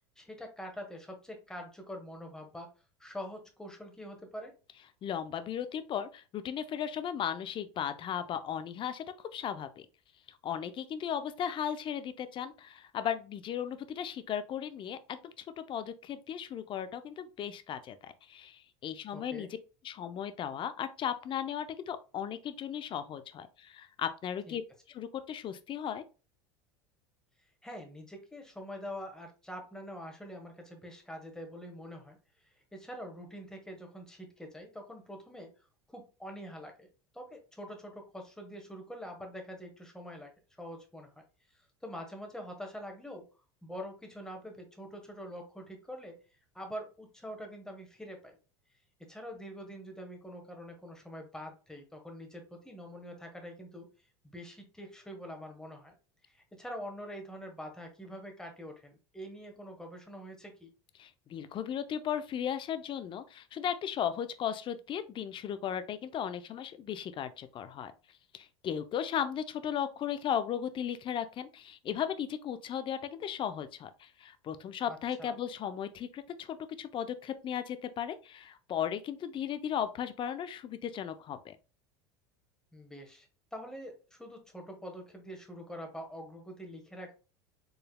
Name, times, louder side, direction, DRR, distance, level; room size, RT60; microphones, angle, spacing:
voice 1, 0.2-2.7 3.0-4.5 19.1-19.5 24.5-24.6 27.6-32.2 32.7-35.5 35.9-36.9 37.1-40.3 40.6-41.2 41.5-43.2 43.6-46.2 46.5-48.4 49.1-53.9 54.2-55.9 56.2-60.7 74.9-75.3 82.7-87.1, equal, 5° left, 1.2 m, -45 dB
voice 2, 5.0-9.0 9.3-9.9 10.3-19.5 19.8-24.6 24.9-26.0 61.0-67.9 68.3-81.6, left 9 dB, 35° left, 0.5 m, -36 dB
4.7 x 3.2 x 2.2 m
hypercardioid pair, 95°, 14 cm